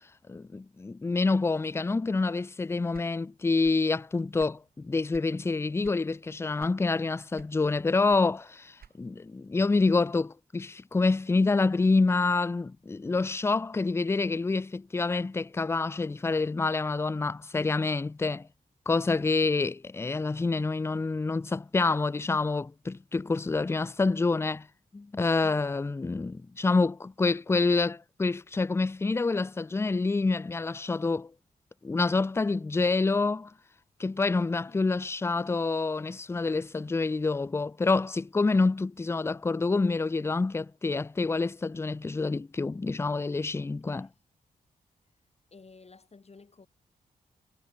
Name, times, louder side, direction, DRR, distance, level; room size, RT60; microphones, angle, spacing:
voice 1, 0.3-18.5 18.9-24.7 24.9-31.3 31.8-33.5 34.0-44.1, left 3 dB, 15° left, 0.4 m, -27 dB
sound 1, 2.9-3.9 4.2-5.4 5.8-6.1 6.6-7.0 7.3-9.2, right 8 dB, 80° right, 2.9 m, -52 dB
voice 2, 45.5-46.7, left 4 dB, 40° left, 6.8 m, -54 dB
cardioid pair, 55°, 16 cm